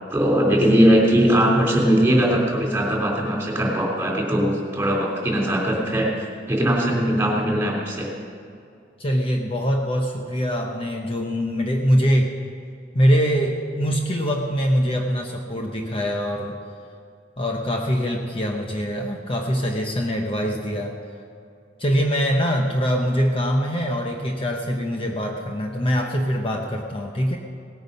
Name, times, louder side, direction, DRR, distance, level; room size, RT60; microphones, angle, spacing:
voice 1, 0.1-8.1, equal, 15° right, -2 dB, 3.2 m, -20 dB
voice 2, 9.0-12.3 12.9-16.6 17.4-21.0 21.8-27.4, equal, 30° left, 2 dB, 0.8 m, -23 dB
18.5 x 9.4 x 5.4 m, 2.4 s
head